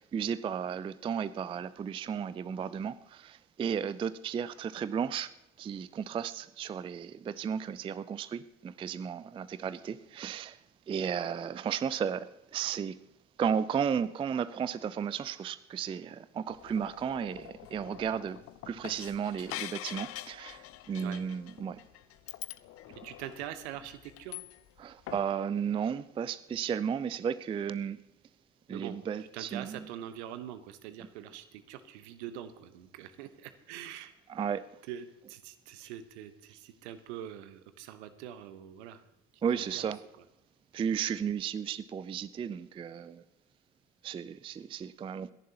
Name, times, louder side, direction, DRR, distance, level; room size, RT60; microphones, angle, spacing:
voice 1, 0.0-5.3 5.6-10.6 10.9-13.0 13.4-18.4 18.7-21.8 24.8-28.0 28.7-29.9 34.3-34.6 39.4-40.0 40.7-43.2 44.0-45.3, right 7 dB, 15° right, 17 dB, 0.4 m, -34 dB
sound 1, 16.5-24.8 25.1-25.3, left 15 dB, 40° left, 0.5 m, -45 dB
voice 2, 23.0-24.4 28.7-29.0 29.3-34.1 34.9-39.0 39.5-39.9, right 10 dB, 65° right, 11 dB, 1.1 m, -44 dB
27.5 x 11.0 x 2.9 m, 0.88 s
figure-of-eight pair, 60°, 36 cm